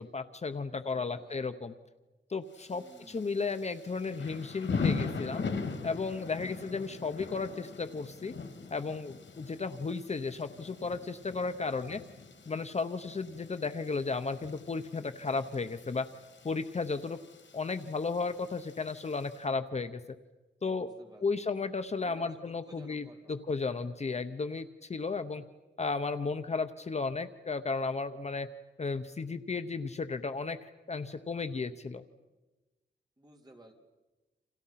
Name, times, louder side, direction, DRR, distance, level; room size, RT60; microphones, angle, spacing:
voice 1, 0.0-1.7 2.3-5.4 5.8-8.3 8.7-12.0 12.5-16.1 16.4-17.2 17.5-20.0 20.6-20.9 21.2-25.4 25.8-28.5 28.8-32.0, left 4 dB, 35° left, 9 dB, 0.8 m, -34 dB
voice 2, 0.6-1.4 2.7-3.4 11.7-12.0 20.8-21.6 22.0-23.5 33.2-33.7, right 1 dB, 20° right, 2 dB, 3.4 m, -55 dB
Thunder / Rain, 2.5-19.4, left 4 dB, 80° left, 3.1 m, -40 dB
30.0 x 27.5 x 5.8 m, 1.1 s
wide cardioid pair, 170°, 19 cm